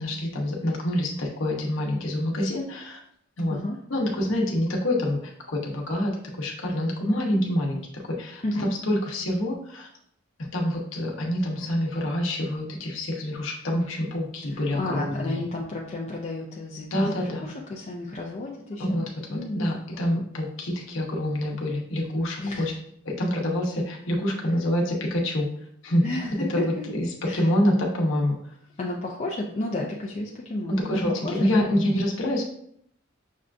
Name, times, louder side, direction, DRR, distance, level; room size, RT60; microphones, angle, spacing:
voice 1, 0.0-3.0 3.4-3.6 3.9-9.9 10.4-15.4 16.9-17.5 18.8-22.7 23.1-25.5 25.8-26.0 26.5-27.1 27.3-28.4 30.7-32.4, left 1 dB, 75° left, -1 dB, 0.9 m, -26 dB
voice 2, 14.5-19.0 19.3-19.6 22.4-22.8 26.0-26.7 27.2-27.5 28.8-31.7, left 2 dB, 35° left, -2 dB, 0.4 m, -32 dB
6.3 x 2.3 x 2.5 m, 0.69 s
head